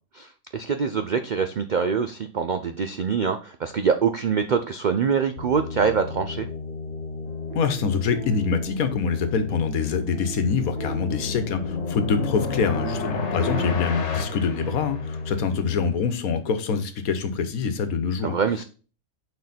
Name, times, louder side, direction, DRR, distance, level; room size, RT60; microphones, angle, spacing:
voice 1, 0.1-6.5 18.2-18.6, right 6 dB, 85° right, 8 dB, 0.4 m, -24 dB
sound 1, 5.4-15.9, left 3 dB, 35° left, 1.4 m, -34 dB
sound 2, 7.3-14.0, right 5 dB, 45° right, 1.5 m, -40 dB
voice 2, 7.5-18.3, left 5 dB, 80° left, 9 dB, 1.4 m, -25 dB
sound 3, 10.5-15.5, left 5 dB, 55° left, 1.4 m, -31 dB
6.5 x 4.5 x 4.1 m, 0.36 s
omnidirectional pair, 1.5 m